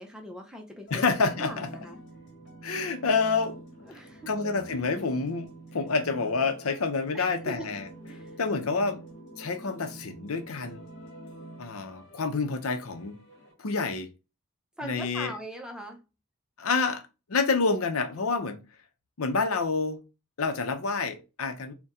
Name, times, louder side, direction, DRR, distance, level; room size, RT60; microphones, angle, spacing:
voice 1, 0.0-2.0 3.9-4.5 7.1-7.7 8.1-8.4 14.8-16.0, equal, 5° right, 0.5 m, -41 dB
voice 2, 0.9-1.7 2.6-3.6 4.3-7.9 8.4-9.0 9.4-10.8 11.6-13.2 13.6-14.1 14.8-15.3 16.6-17.0 17.3-18.6 19.2-20.0 20.4-21.7, left 4 dB, 90° left, 0.7 m, -28 dB
sound 1, 0.9-13.5, right 2 dB, 50° left, 1.2 m, -47 dB
4.2 x 2.2 x 3.6 m
head